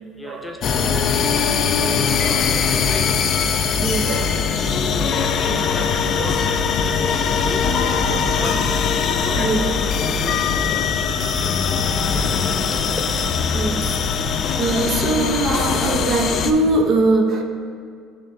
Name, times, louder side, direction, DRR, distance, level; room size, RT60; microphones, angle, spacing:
voice 1, 0.2-1.3 1.7-2.2 2.7-3.2 3.6-3.7 4.6-8.7 9.2-9.6 9.9-12.9, left 2 dB, 15° left, 1 dB, 0.8 m, -36 dB
sound 1, 0.6-16.5, left 6 dB, 50° left, 0.4 m, -21 dB
voice 2, 2.2-2.6 3.8-4.3 6.2-6.3 7.8-8.0 8.4-8.5 9.4-9.6 13.5-13.9 14.2-17.4, right 2 dB, 50° right, 3 dB, 0.7 m, -22 dB
10.5 x 3.7 x 2.7 m, 2.2 s
cardioid pair, 110°, 0 cm